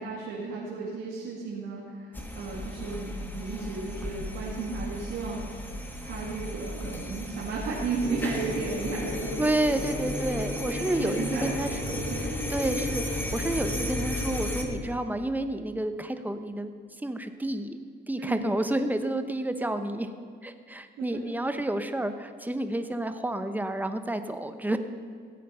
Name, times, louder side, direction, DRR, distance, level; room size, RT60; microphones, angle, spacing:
voice 1, 0.0-5.7 6.0-9.8 10.8-12.2 18.2-18.4 21.0-21.2, right 4 dB, 85° right, -5 dB, 2.3 m, -34 dB
sound 1, 2.1-14.6, left 1 dB, 10° left, 1.7 m, -36 dB
sound 2, 8.0-14.8, left 1 dB, 45° left, 4.2 m, -35 dB
voice 2, 9.4-11.8 12.5-16.7 17.0-17.8 18.1-20.1 20.4-24.8, right 1 dB, 10° right, 9 dB, 0.9 m, -30 dB
16.5 x 8.5 x 5.7 m, 2.2 s
cardioid pair, 90°, 20 cm